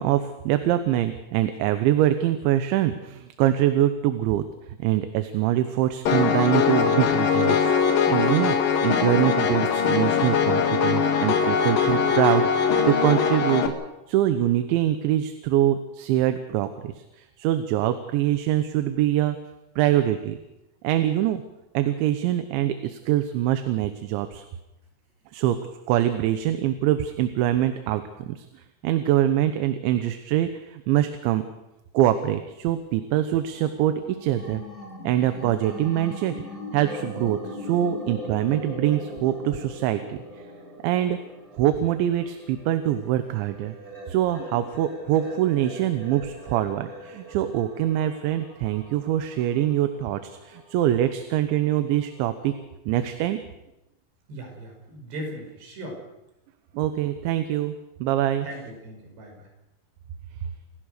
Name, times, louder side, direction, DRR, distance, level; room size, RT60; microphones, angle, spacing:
voice 1, 0.0-4.5 4.8-7.7 8.1-8.6 8.8-13.6 14.1-19.4 19.8-20.4 20.8-21.4 21.8-24.5 25.3-25.6 25.9-31.4 32.0-34.6 35.0-36.4 36.7-40.4 40.8-41.2 41.5-43.8 44.1-52.5 52.9-53.4 56.8-57.8 58.0-58.5, right 12 dB, 85° right, 9 dB, 3.4 m, -24 dB
Piano, 6.1-13.7, left 6 dB, 60° left, 3.2 m, -21 dB
sound 1, 33.5-52.6, left 1 dB, 5° right, 6.3 m, -41 dB
voice 2, 54.3-56.1 58.4-59.5, right 1 dB, 65° right, 0 dB, 7.9 m, -38 dB
29.5 x 15.0 x 6.6 m, 0.91 s
omnidirectional pair, 5.2 m